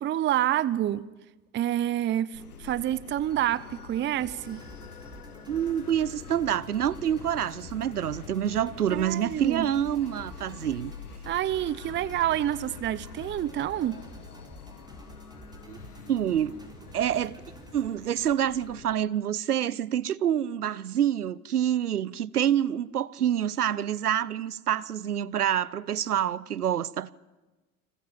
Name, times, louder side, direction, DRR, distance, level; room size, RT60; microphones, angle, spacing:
voice 1, 0.0-1.0 1.5-4.6 8.9-9.7 11.3-14.0, right 12 dB, 25° right, 0.7 m, -28 dB
sound 1, 2.3-19.0, left 6 dB, 85° left, 1.5 m, -46 dB
sound 2, 4.2-17.9, right 1 dB, 10° right, 4.3 m, -50 dB
voice 2, 5.5-10.9 15.7-15.8 16.1-16.5 16.9-17.4 17.7-27.1, right 10 dB, 85° right, 0.7 m, -27 dB
30.0 x 21.5 x 5.7 m
figure-of-eight pair, 75°, 44 cm